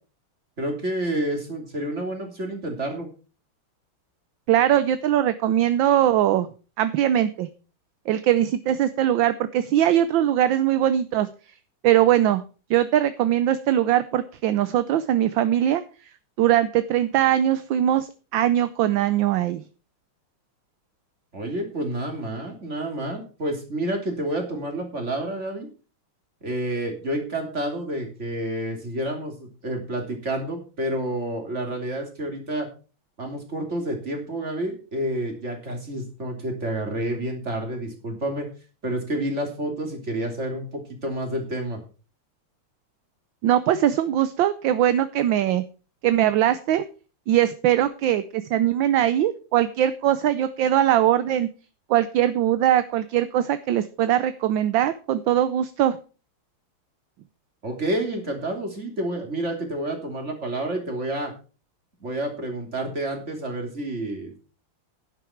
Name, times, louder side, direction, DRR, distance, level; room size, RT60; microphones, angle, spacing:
voice 1, 0.6-3.1 21.3-25.7 26.4-32.7 33.2-38.5 38.8-41.8 57.6-61.3 62.0-64.4, right 1 dB, 30° right, 3 dB, 3.4 m, -29 dB
voice 2, 4.5-6.5 6.8-7.5 8.1-11.3 11.8-12.4 12.7-15.8 16.4-19.6 43.4-45.6 46.0-46.8 47.3-51.5 51.9-56.0, right 11 dB, 70° right, 12 dB, 1.4 m, -21 dB
11.0 x 11.0 x 4.5 m, 0.36 s
omnidirectional pair, 2.3 m